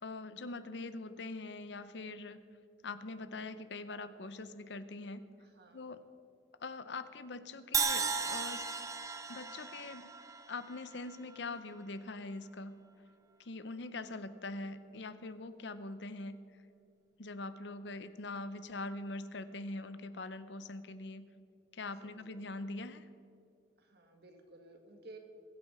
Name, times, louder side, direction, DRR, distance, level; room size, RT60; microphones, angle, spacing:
voice 1, 0.0-2.4 2.8-5.3 5.7-6.0 6.6-8.7 9.3-12.8 13.4-16.4 17.2-21.3 21.7-23.1, left 2 dB, 70° left, 12 dB, 0.7 m, -43 dB
voice 2, 5.4-5.9 22.0-22.4 23.8-25.2, right 2 dB, 60° right, 4 dB, 1.7 m, -56 dB
Crash cymbal, 7.7-11.8, right 5 dB, 20° right, 0.7 m, -36 dB
21.5 x 8.5 x 4.9 m, 2.4 s
head